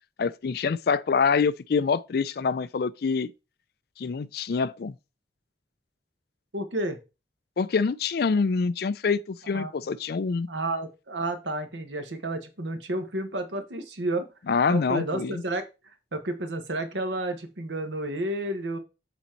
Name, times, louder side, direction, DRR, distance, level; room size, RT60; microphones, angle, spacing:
voice 1, 0.2-3.3 4.0-4.9 7.6-10.5 14.5-15.4, left 5 dB, 60° left, 0.4 m, -25 dB
voice 2, 6.5-7.0 9.5-9.7 10.5-14.3 14.7-15.6 16.1-18.8, right 1 dB, 80° right, 1.2 m, -31 dB
7.0 x 4.0 x 4.5 m
head